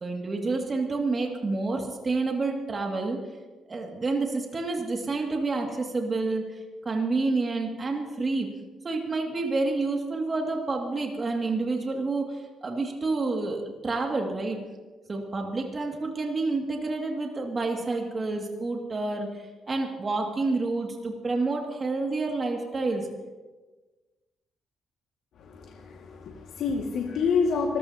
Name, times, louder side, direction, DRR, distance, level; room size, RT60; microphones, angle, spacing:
voice 1, 0.0-3.2 3.7-8.5 8.8-14.6 15.1-23.1, right 3 dB, 35° right, 1 dB, 2.4 m, -29 dB
voice 2, 25.4-27.8, left 5 dB, 75° left, -1 dB, 2.0 m, -28 dB
25.5 x 15.5 x 2.9 m, 1.3 s
cardioid pair, 90°, 0 cm